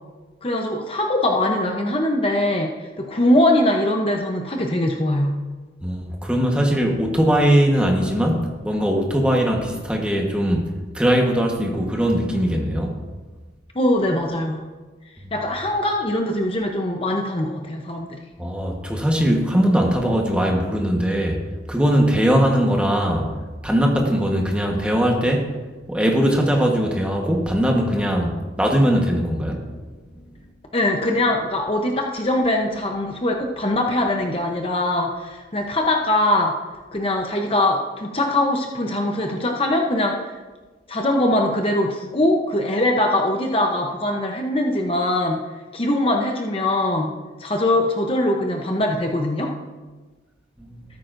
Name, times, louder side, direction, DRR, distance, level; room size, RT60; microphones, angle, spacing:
voice 1, 0.4-5.3 13.7-14.6 15.3-18.2 30.7-36.5 36.9-40.4 40.9-45.4 45.7-47.1 47.4-49.5, left 1 dB, 30° left, 1 dB, 0.8 m, -22 dB
voice 2, 5.8-13.0 15.2-15.3 18.4-23.3 23.6-25.5 25.9-29.7 50.6-50.7, equal, 5° right, 0 dB, 1.2 m, -20 dB
13.5 x 13.0 x 2.6 m, 1.3 s
head